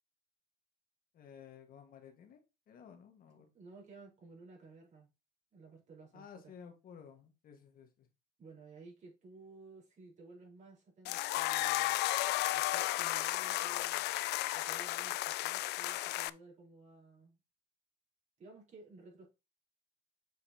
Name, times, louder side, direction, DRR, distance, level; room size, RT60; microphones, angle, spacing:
voice 1, 1.1-2.4 2.7-3.5 6.1-8.1, left 7 dB, 60° left, 1.7 m, -54 dB
voice 2, 3.5-5.1 5.5-6.5 8.4-12.0 12.5-14.0 14.5-17.4 18.4-19.3, right 3 dB, 45° right, 4.5 m, -55 dB
sound 1, 11.1-16.3, left 17 dB, 80° left, 0.4 m, -33 dB
7.8 x 5.6 x 2.9 m
cardioid pair, 110°, 17 cm